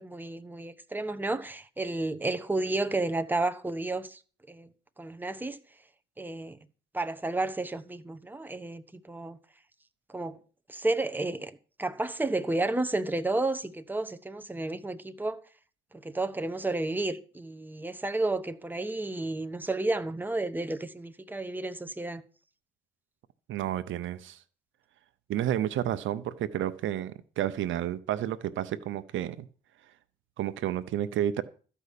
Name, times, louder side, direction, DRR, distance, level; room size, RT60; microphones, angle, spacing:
voice 1, 0.0-4.2 4.5-4.7 5.0-5.6 6.2-6.6 6.9-9.4 10.1-10.4 10.7-11.5 11.8-15.4 15.9-22.2, right 2 dB, 10° right, 1.0 m, -31 dB
voice 2, 23.5-24.4 25.3-29.5 30.4-31.4, right 11 dB, 75° right, 0.9 m, -31 dB
13.5 x 5.5 x 8.4 m
cardioid pair, 90°, 20 cm